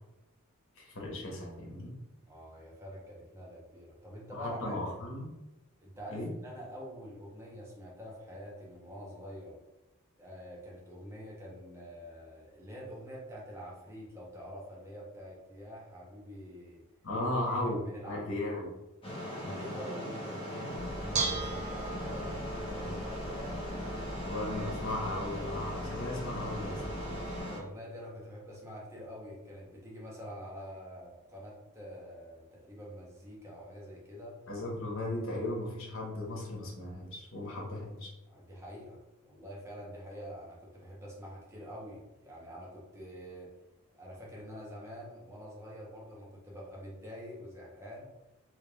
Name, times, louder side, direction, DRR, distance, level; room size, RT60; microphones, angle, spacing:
voice 1, 0.7-1.9 4.3-5.3 6.1-6.3 17.0-18.7 24.3-26.8 34.5-38.1, left 1 dB, 60° left, -3 dB, 1.1 m, -36 dB
voice 2, 2.2-4.8 5.8-9.6 10.2-16.8 17.5-18.5 19.3-23.8 27.3-34.3 38.3-43.6 44.0-48.1, equal, 15° right, -4 dB, 0.8 m, -46 dB
sound 1, 19.0-27.6, equal, 25° left, 0.8 m, -39 dB
Bell / Dishes pots and pans, 20.7-27.4, right 3 dB, 30° right, 0.4 m, -39 dB
3.4 x 3.3 x 2.3 m, 0.98 s
head